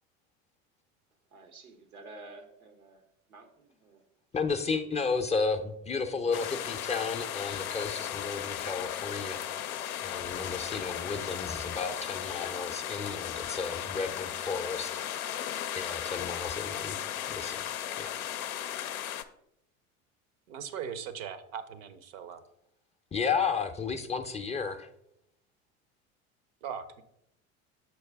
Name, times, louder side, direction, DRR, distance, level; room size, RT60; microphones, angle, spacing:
voice 1, 1.3-3.0 3.3-4.0, right 2 dB, 90° right, 1.0 m, -50 dB
voice 2, 4.3-9.4 10.0-15.0 15.7-17.0 17.2-17.7 18.0-18.1 23.1-24.9, left 5 dB, 15° left, 0.5 m, -33 dB
sound 1, 6.3-19.2, left 10 dB, 85° left, 0.5 m, -36 dB
voice 3, 20.5-22.4 26.6-27.0, right 8 dB, 65° right, 0.7 m, -39 dB
6.5 x 4.7 x 3.4 m
hypercardioid pair, 75°, 41 cm